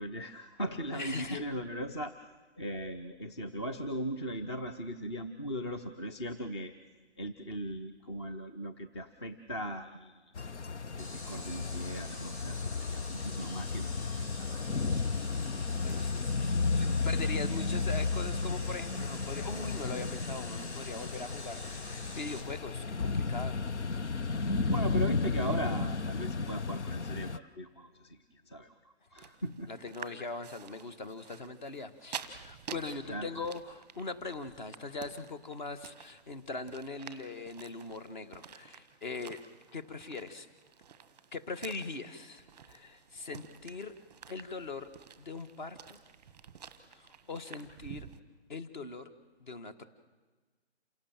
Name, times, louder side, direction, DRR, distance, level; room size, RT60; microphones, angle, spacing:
voice 1, 0.0-2.2 2.6-6.7 7.2-10.2 11.0-13.9 14.3-14.6 24.2-28.7 29.1-29.7 33.1-33.3, equal, 25° left, 6 dB, 0.7 m, -38 dB
voice 2, 0.9-1.4 15.8-23.6 29.7-39.4 39.7-40.5 41.3-43.9 44.3-44.9 45.2-46.0 46.9-48.1 48.5-49.1 49.4-49.9, left 3 dB, 45° left, 10 dB, 1.7 m, -41 dB
sound 1, 10.4-27.4, left 4 dB, 90° left, 1.0 m, -33 dB
sound 2, 11.0-22.4, left 2 dB, 70° left, 6.6 m, -46 dB
sound 3, 29.2-48.2, right 7 dB, 10° right, 0.9 m, -50 dB
28.0 x 17.5 x 7.5 m, 1.4 s
hypercardioid pair, 170°, 34 cm